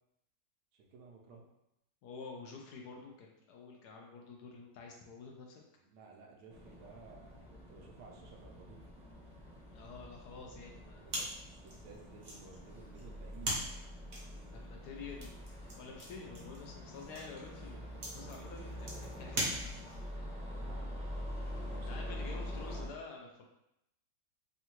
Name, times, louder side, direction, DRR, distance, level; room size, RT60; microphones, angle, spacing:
voice 1, 0.8-1.5 5.8-8.9 11.0-13.7 20.5-20.9 21.4-22.5, right 4 dB, 75° right, 0 dB, 1.1 m, -55 dB
voice 2, 2.0-5.6 9.7-11.1 14.4-19.9 21.9-23.5, left 4 dB, 75° left, 1 dB, 1.0 m, -49 dB
sound 1, 6.5-22.9, left 1 dB, 10° right, 0.4 m, -45 dB
sound 2, 11.1-20.1, right 1 dB, 50° right, 0.7 m, -42 dB
3.6 x 2.2 x 2.9 m, 0.82 s
omnidirectional pair, 1.9 m